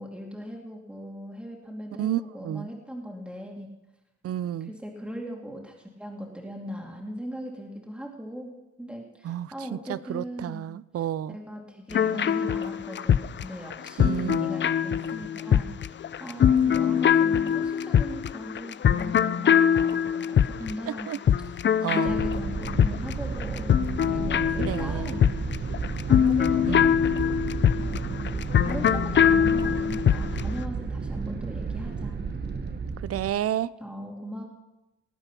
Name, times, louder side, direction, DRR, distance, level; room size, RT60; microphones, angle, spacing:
voice 1, 0.0-3.7 4.6-8.5 8.8-10.7 11.3-15.9 16.2-21.1 21.9-25.3 26.1-27.1 27.8-28.4 28.6-32.2 33.8-34.4, equal, 5° right, 0 dB, 2.7 m, -38 dB
voice 2, 2.0-2.7 4.2-4.7 9.2-11.4 14.0-14.5 20.9-21.2 21.8-22.2 24.6-25.2 26.6-26.9 33.0-33.7, right 11 dB, 50° right, 19 dB, 0.5 m, -31 dB
sound 1, 11.9-30.5, left 8 dB, 40° left, 0.5 m, -23 dB
sound 2, 22.1-33.3, right 4 dB, 35° right, 1.3 m, -32 dB
19.0 x 8.8 x 6.0 m, 1.0 s
cardioid pair, 90°, 30 cm